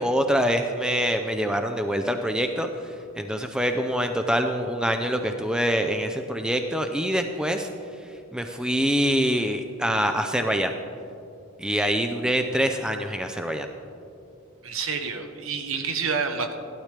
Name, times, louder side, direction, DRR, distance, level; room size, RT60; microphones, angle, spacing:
voice 1, 0.0-2.7 3.2-7.7 8.3-10.7 11.6-13.7, equal, 5° right, 6 dB, 0.4 m, -25 dB
voice 2, 14.6-16.5, right 5 dB, 70° right, 6 dB, 1.0 m, -28 dB
15.0 x 12.0 x 3.3 m, 2.6 s
head